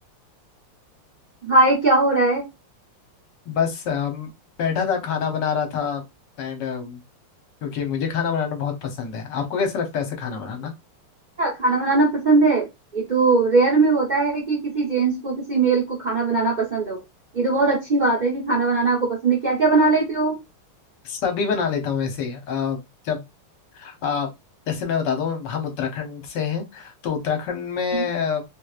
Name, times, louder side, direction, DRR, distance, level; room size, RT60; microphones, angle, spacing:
voice 1, 1.4-2.4 11.4-12.7 12.9-17.0 17.3-20.4 27.9-28.1, right 3 dB, 40° right, -3 dB, 0.6 m, -20 dB
voice 2, 3.5-4.3 4.6-6.0 6.4-7.0 7.6-10.7 21.0-22.8 23.0-23.2 23.7-24.3 24.7-28.4, left 6 dB, 60° left, 5 dB, 1.3 m, -26 dB
3.3 x 3.1 x 2.3 m, 0.21 s
omnidirectional pair, 2.4 m